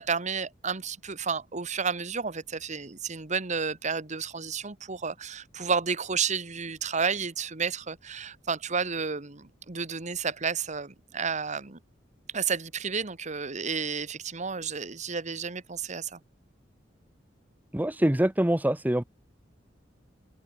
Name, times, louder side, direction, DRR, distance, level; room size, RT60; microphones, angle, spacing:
voice 1, 0.0-11.8 12.3-16.2, right 5 dB, 40° right, 1.4 m, -31 dB
voice 2, 17.7-19.0, right 1 dB, 10° right, 0.8 m, -24 dB
head